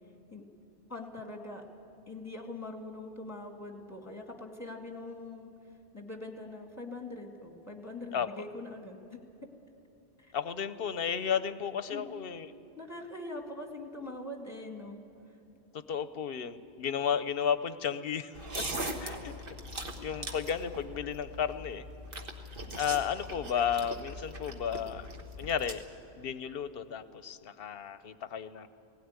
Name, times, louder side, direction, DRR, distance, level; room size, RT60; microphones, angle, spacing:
voice 1, 0.9-1.7 2.1-5.5 5.9-9.2 10.2-10.3 11.9-12.0 12.8-15.0 19.8-19.9, left 2 dB, 15° left, 3 dB, 2.0 m, -43 dB
voice 2, 10.3-12.5 15.7-18.6 19.0-19.5 20.0-21.8 22.7-25.1 25.4-25.8 26.2-28.7, left 8 dB, 65° left, 13 dB, 0.9 m, -33 dB
sound 1, 18.3-25.7, right 1 dB, 60° right, 1.7 m, -40 dB
18.5 x 16.5 x 9.5 m, 2.7 s
omnidirectional pair, 1.1 m